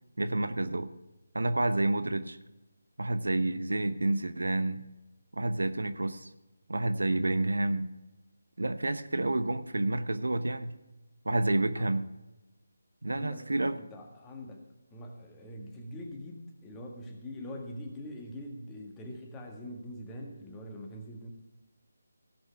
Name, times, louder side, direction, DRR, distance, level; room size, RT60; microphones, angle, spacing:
voice 1, 0.2-0.9 1.3-2.4 3.0-4.8 5.3-6.3 6.7-7.9 8.6-10.7 11.2-12.1 13.0-13.8, right 2 dB, 85° right, 11 dB, 0.9 m, -29 dB
voice 2, 13.1-13.5 13.8-21.3, left 1 dB, 10° left, 1 dB, 1.6 m, -43 dB
16.5 x 5.6 x 5.8 m, 1.0 s
figure-of-eight pair, 165°, 0 cm